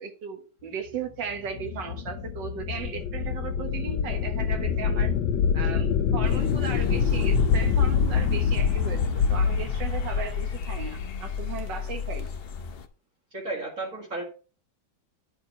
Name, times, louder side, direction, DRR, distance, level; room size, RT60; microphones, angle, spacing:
voice 1, 0.0-5.1 5.5-12.3, right 6 dB, 70° right, 2.0 m, -36 dB
sound 1, 1.2-11.4, left 6 dB, 80° left, 1.4 m, -25 dB
sound 2, 6.2-12.9, left 6 dB, 60° left, 0.6 m, -36 dB
voice 2, 13.3-14.2, right 2 dB, 45° right, 2.3 m, -33 dB
10.0 x 4.5 x 5.4 m
omnidirectional pair, 2.1 m